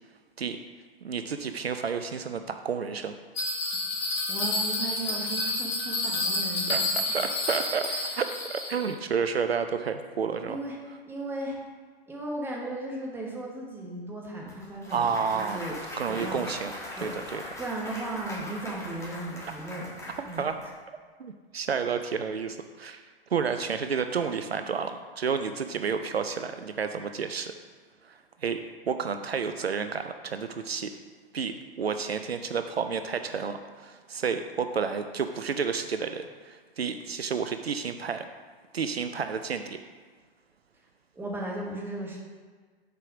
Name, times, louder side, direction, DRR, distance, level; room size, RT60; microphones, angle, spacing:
voice 1, 1.0-3.1 6.7-6.8 7.1-10.6 14.9-15.6 16.0-16.7 17.0-17.4 20.4-20.6 21.2-23.0 23.3-27.5 28.0-30.9 31.3-38.3 38.7-39.8, right 6 dB, 80° right, 8 dB, 0.5 m, -30 dB
Bell, 3.4-8.9, left 2 dB, 45° left, 1.8 m, -29 dB
voice 2, 4.3-6.8 7.9-8.0 10.5-10.8 11.1-11.6 12.1-16.6 17.0-19.9 20.2-20.5 41.1-42.2, right 2 dB, 5° right, -2 dB, 1.1 m, -36 dB
Clapping / Cheering / Applause, 14.5-20.7, left 1 dB, 10° left, 1.3 m, -41 dB
6.8 x 4.6 x 5.0 m, 1.5 s
figure-of-eight pair, 110°, 31 cm